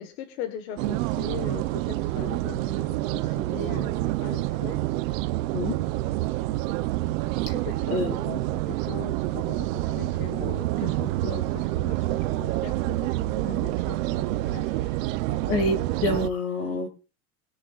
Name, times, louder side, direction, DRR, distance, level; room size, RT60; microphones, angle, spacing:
voice 1, 0.0-4.9 7.6-15.0, left 8 dB, 60° left, 7 dB, 1.7 m, -40 dB
sound 1, 0.8-16.3, right 17 dB, 55° right, 0.9 m, -28 dB
voice 2, 15.5-16.9, left 2 dB, 30° left, 6 dB, 2.4 m, -27 dB
21.5 x 10.5 x 2.5 m, 0.35 s
supercardioid pair, 175°, 47 cm